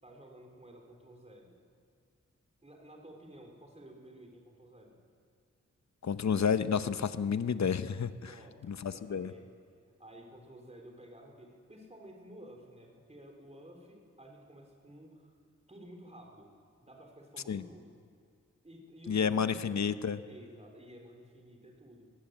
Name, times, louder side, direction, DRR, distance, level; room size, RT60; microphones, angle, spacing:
voice 1, 0.0-1.6 2.6-5.0 8.2-8.6 8.9-9.4 10.0-15.4 15.7-16.5 16.8-18.0 18.6-19.9 20.3-22.1, right 1 dB, 20° right, 1 dB, 3.7 m, -53 dB
voice 2, 6.0-8.3 8.7-9.3 17.5-17.6 19.1-20.2, left 6 dB, 70° left, 12 dB, 0.8 m, -30 dB
21.0 x 16.0 x 7.9 m, 2.1 s
wide cardioid pair, 90°, 29 cm